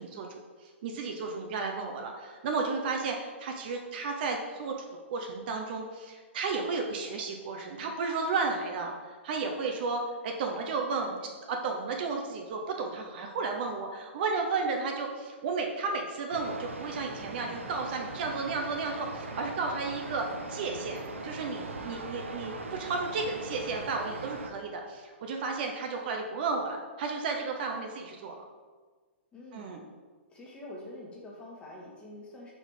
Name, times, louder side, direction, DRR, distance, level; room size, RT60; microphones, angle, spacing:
voice 1, 0.0-4.8 5.1-28.4 29.5-29.8, right 4 dB, 50° right, 2 dB, 0.8 m, -33 dB
sound 1, 16.3-24.5, right 3 dB, 85° right, 0.7 m, -40 dB
voice 2, 29.3-29.7 30.3-32.5, left 1 dB, 15° left, -3 dB, 1.5 m, -46 dB
4.9 x 4.3 x 4.9 m, 1.4 s
hypercardioid pair, 120°, 7 cm